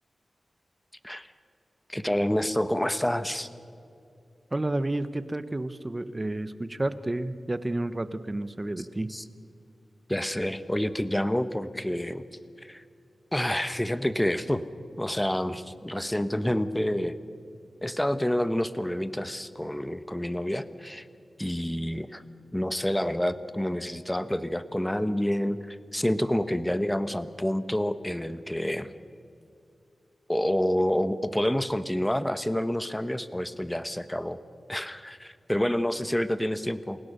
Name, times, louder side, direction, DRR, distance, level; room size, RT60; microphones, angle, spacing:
voice 1, 1.9-3.5 9.1-9.2 10.1-12.2 12.6-12.8 13.3-14.7 15.0-17.1 17.8-21.1 21.4-22.2 22.5-28.9 30.3-34.4 34.7-37.0, left 1 dB, 10° left, 13 dB, 1.0 m, -28 dB
voice 2, 4.5-9.1, right 2 dB, 25° right, 13 dB, 1.0 m, -31 dB
29.0 x 17.0 x 6.7 m, 2.5 s
wide cardioid pair, 75°, 0 cm